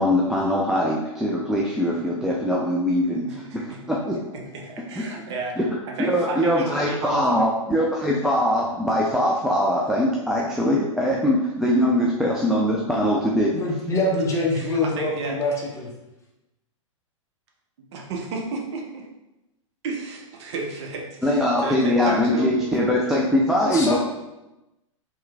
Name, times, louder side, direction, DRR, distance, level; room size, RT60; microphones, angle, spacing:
voice 1, 0.0-4.2 5.6-5.7 6.0-13.5 21.2-24.0, equal, 5° right, -4 dB, 0.4 m, -22 dB
voice 2, 3.2-3.8 4.3-5.6 5.9-7.5 14.3-15.4 17.9-19.1 19.8-22.5, right 3 dB, 55° right, 0 dB, 0.9 m, -33 dB
voice 3, 13.5-15.5 15.8-15.9 23.6-24.0, left 2 dB, 15° left, -2 dB, 0.9 m, -24 dB
3.4 x 3.0 x 3.3 m, 0.98 s
hypercardioid pair, 110°, 17 cm